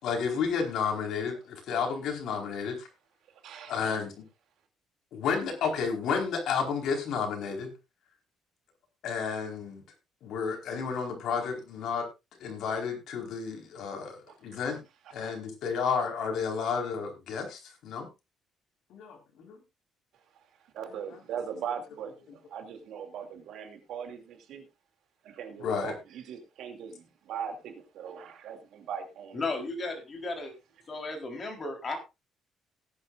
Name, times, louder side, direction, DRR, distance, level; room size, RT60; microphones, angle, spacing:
voice 1, 0.0-2.9 3.6-4.2 5.1-7.7 9.0-9.8 10.2-12.0 12.4-14.8 15.1-18.1 18.9-19.6 25.6-25.9, left 6 dB, 70° left, 2 dB, 4.5 m, -31 dB
voice 2, 3.4-3.8 14.5-14.6 15.2-15.3 20.7-22.1 22.5-24.7 25.2-29.4, right 7 dB, 70° right, 5 dB, 2.7 m, -39 dB
voice 3, 29.3-30.5 30.9-32.0, left 3 dB, 30° left, 3 dB, 3.9 m, -34 dB
18.0 x 10.5 x 2.5 m, 0.26 s
cardioid pair, 155°, 0 cm